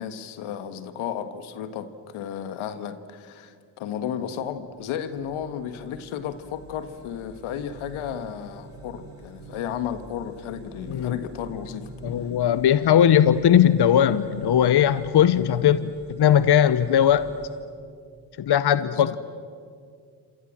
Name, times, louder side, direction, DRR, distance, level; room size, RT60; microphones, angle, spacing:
voice 1, 0.0-11.9 18.8-19.2, left 9 dB, 80° left, 11 dB, 1.7 m, -33 dB
sound 1, 4.5-17.6, right 2 dB, 75° right, 7.8 m, -45 dB
voice 2, 12.0-17.3 18.4-19.2, left 9 dB, 55° left, 15 dB, 1.0 m, -19 dB
28.0 x 26.5 x 7.7 m, 2.2 s
supercardioid pair, 50°, 48 cm